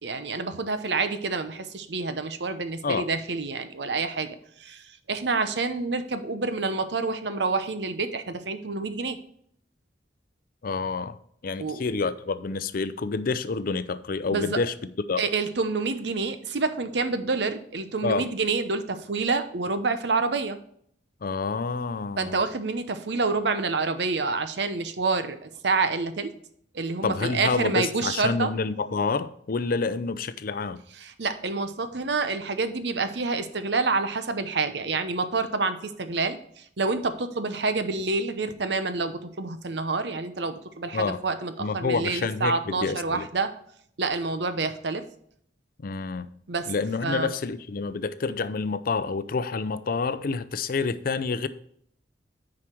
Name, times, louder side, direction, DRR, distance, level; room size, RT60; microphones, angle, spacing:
voice 1, 0.0-4.8 5.1-9.2 11.6-11.8 14.3-14.6 15.2-20.6 22.2-26.3 26.7-28.5 31.0-36.4 36.8-43.5 44.0-45.0 46.5-46.7 47.0-47.3, right 4 dB, 70° right, 0.8 m, -28 dB
voice 2, 10.6-11.2 11.4-14.7 15.1-15.2 18.0-18.3 21.2-22.4 27.0-30.8 40.9-41.2 41.6-43.3 45.8-46.3 46.7-51.5, left 4 dB, 55° left, 0.5 m, -28 dB
9.6 x 4.9 x 4.5 m
head